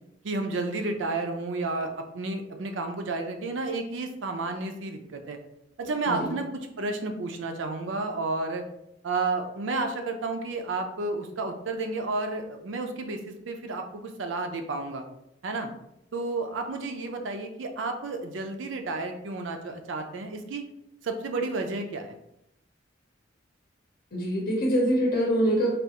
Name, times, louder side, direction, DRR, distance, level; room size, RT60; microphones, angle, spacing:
voice 1, 0.2-5.4 5.8-8.6 9.0-15.0 15.4-15.7 16.1-20.6 21.0-22.2, right 3 dB, 85° right, 5 dB, 0.5 m, -31 dB
voice 2, 24.1-25.7, equal, 55° left, -3 dB, 0.7 m, -24 dB
3.3 x 2.4 x 2.8 m, 0.80 s
head